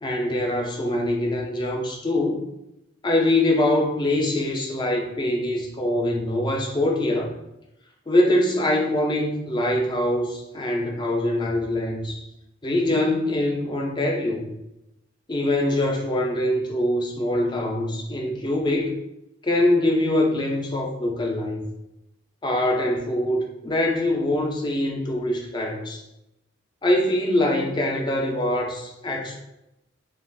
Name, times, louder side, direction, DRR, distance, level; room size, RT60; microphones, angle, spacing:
voice 1, 0.0-2.5 3.0-7.3 8.1-12.3 12.6-14.5 15.3-19.0 19.4-21.6 22.4-26.0 26.8-29.4, left 1 dB, 20° left, 1 dB, 0.4 m, -23 dB
2.3 x 2.3 x 3.3 m, 0.87 s
head